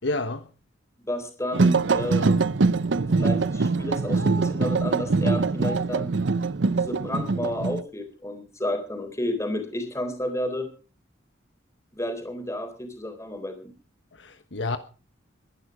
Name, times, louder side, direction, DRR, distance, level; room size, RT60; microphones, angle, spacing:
voice 1, 0.0-0.5 14.2-14.8, left 2 dB, 70° left, 1.3 m, -29 dB
voice 2, 1.0-2.4 3.1-6.1 6.8-10.7 11.9-13.7, left 1 dB, 15° left, 3.9 m, -31 dB
sound 1, 1.5-7.8, right 3 dB, 70° right, 0.7 m, -23 dB
21.5 x 11.0 x 5.0 m
head